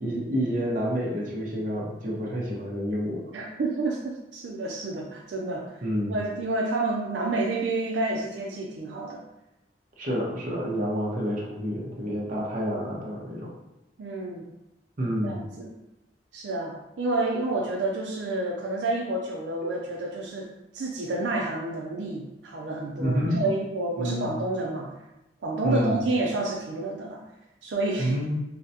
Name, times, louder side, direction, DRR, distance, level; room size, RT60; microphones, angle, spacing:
voice 1, 0.0-3.2 5.8-6.2 10.0-13.5 15.0-15.4 23.0-23.4 24.0-24.3 25.6-26.0 28.0-28.3, equal, 50° right, -3 dB, 0.8 m, -28 dB
voice 2, 3.3-5.8 6.1-9.2 14.0-14.5 15.2-15.7 16.3-20.5 20.7-24.9 25.4-27.2 27.6-28.2, right 2 dB, 90° right, -1 dB, 0.4 m, -29 dB
3.8 x 2.1 x 2.7 m, 0.92 s
head